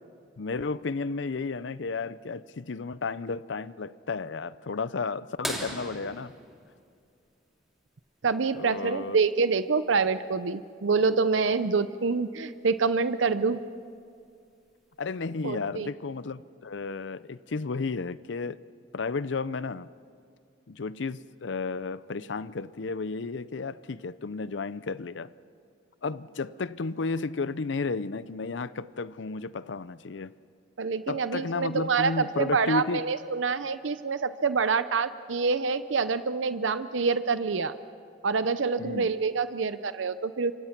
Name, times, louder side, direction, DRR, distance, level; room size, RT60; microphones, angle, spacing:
voice 1, 0.4-6.3 8.5-9.2 15.0-18.6 18.9-19.9 20.7-25.3 26.0-30.3 31.1-33.0 38.8-39.1, left 4 dB, 70° left, 0.6 m, -33 dB
sound 1, 5.4-7.9 9.8-9.9 12.1-12.2 13.9-14.2 15.0-15.1, equal, ahead, 2.8 m, -38 dB
voice 2, 8.2-13.6 15.4-15.9 30.8-37.7 38.2-40.5, right 4 dB, 80° right, 0.7 m, -26 dB
27.5 x 24.5 x 6.0 m
head